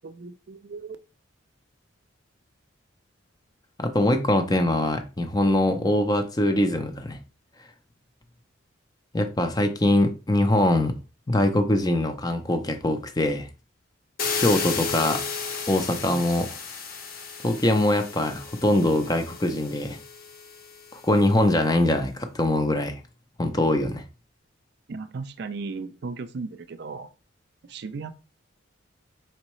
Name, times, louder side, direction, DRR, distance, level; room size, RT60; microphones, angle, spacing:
voice 1, 0.0-1.0 24.9-27.1 27.6-28.1, right 4 dB, 55° right, 0.4 m, -36 dB
voice 2, 3.8-7.2 9.1-11.0 11.3-13.5 14.4-15.2 15.7-16.5 17.4-20.0 20.9-23.0 23.4-24.0, left 1 dB, 20° left, 0.5 m, -23 dB
sound 1, 14.2-21.0, left 5 dB, 45° left, 0.9 m, -33 dB
4.4 x 3.9 x 3.1 m
head